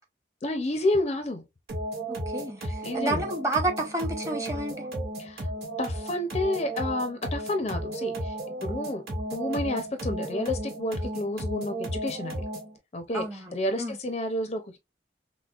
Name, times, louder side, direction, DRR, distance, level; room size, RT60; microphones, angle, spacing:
voice 1, 0.4-1.4 2.6-3.3 5.2-5.5 5.8-9.0 9.3-12.4 12.9-14.8, left 1 dB, 35° left, 0.5 m, -30 dB
sound 1, 1.7-12.8, right 1 dB, 60° right, 1.9 m, -34 dB
voice 2, 2.1-4.9 13.1-14.0, right 2 dB, 15° right, 0.8 m, -31 dB
5.8 x 2.1 x 2.4 m
head